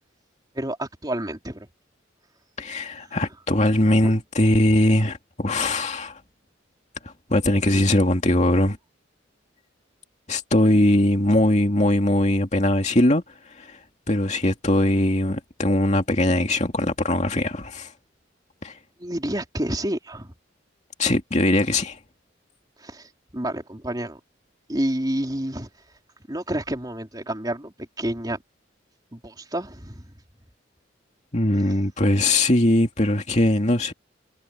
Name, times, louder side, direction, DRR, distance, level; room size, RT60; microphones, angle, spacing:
voice 1, 0.5-1.7 3.0-3.2 4.0-4.1 19.0-20.3 22.8-24.2 24.7-25.9 26.3-28.4 29.1-30.1 31.6-31.8, right 1 dB, 20° right, 3.5 m, -29 dB
voice 2, 2.6-6.2 7.3-8.8 10.3-13.8 14.1-17.9 18.6-18.8 21.0-22.0 31.3-33.9, left 1 dB, 35° left, 2.4 m, -21 dB
head